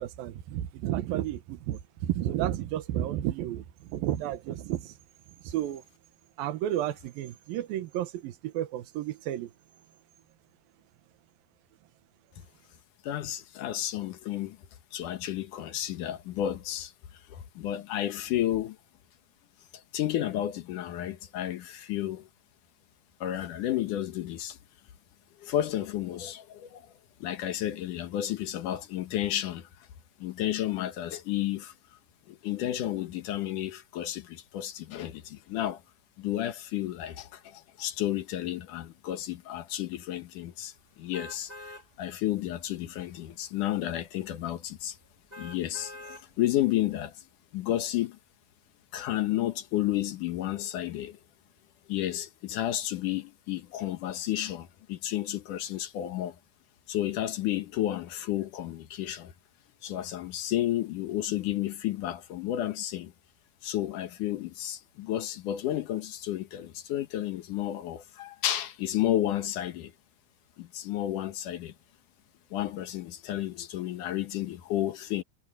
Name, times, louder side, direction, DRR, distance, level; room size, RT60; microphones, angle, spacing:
voice 1, 0.0-4.9 5.4-5.8 6.4-9.5, right 13 dB, 90° right, 2.8 m, -32 dB
voice 2, 13.0-14.6 14.9-18.8 19.9-22.3 23.2-24.6 25.4-26.9 27.2-29.7 30.2-31.7 32.3-35.8 36.2-45.0 45.4-47.2 47.5-48.2 48.9-51.2 51.9-56.4 56.9-59.3 59.8-63.1 63.6-69.9 70.6-71.7 72.5-75.2, left 13 dB, 70° left, 2.5 m, -32 dB
sound 1, 41.1-41.8 42.4-42.5 45.3-46.2 46.8-46.9, left 1 dB, 15° right, 5.1 m, -44 dB
omnidirectional pair, 4.1 m